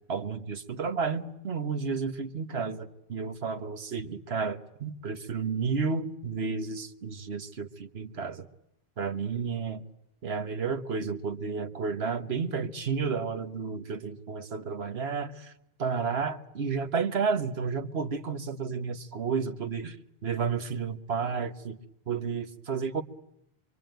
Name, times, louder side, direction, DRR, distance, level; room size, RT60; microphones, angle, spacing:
voice 1, 0.1-8.5 9.0-9.8 10.2-15.5 15.8-20.0 20.2-21.8 22.1-23.0, right 5 dB, 85° right, 9 dB, 1.5 m, -31 dB
25.5 x 24.0 x 9.2 m, 0.79 s
omnidirectional pair, 1.0 m